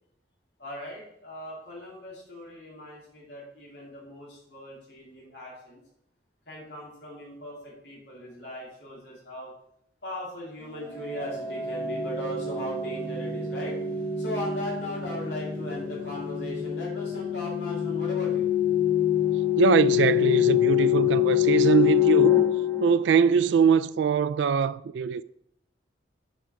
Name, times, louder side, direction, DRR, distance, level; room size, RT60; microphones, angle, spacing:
voice 1, 0.6-5.8 6.5-9.5 10.0-13.8 14.2-18.5, left 1 dB, 70° left, 3.4 m, -38 dB
sound 1, 10.9-23.6, left 11 dB, 10° left, 2.6 m, -25 dB
voice 2, 19.6-22.4 22.8-25.2, right 7 dB, 80° right, 0.3 m, -22 dB
7.6 x 4.8 x 5.1 m
head